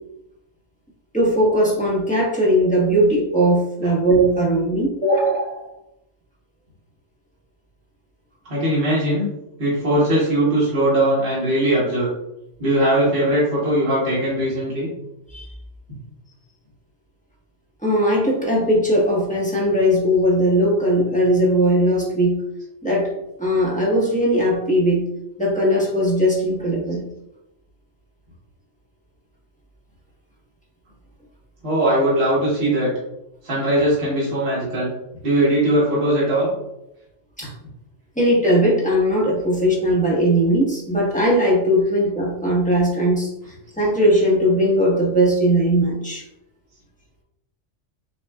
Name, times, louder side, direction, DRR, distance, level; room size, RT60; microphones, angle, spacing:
voice 1, 1.1-5.7 15.3-15.5 17.8-22.4 22.8-23.1 23.4-25.0 25.4-27.0 37.4-37.5 38.2-43.3 43.8-46.2, equal, 5° left, -5 dB, 1.0 m, -19 dB
voice 2, 8.5-9.3 9.6-12.1 12.6-14.9 31.6-32.9 33.4-34.9 35.2-36.5 43.8-43.9, right 1 dB, 50° right, -8 dB, 1.4 m, -20 dB
6.6 x 2.4 x 2.2 m, 0.87 s
omnidirectional pair, 1.3 m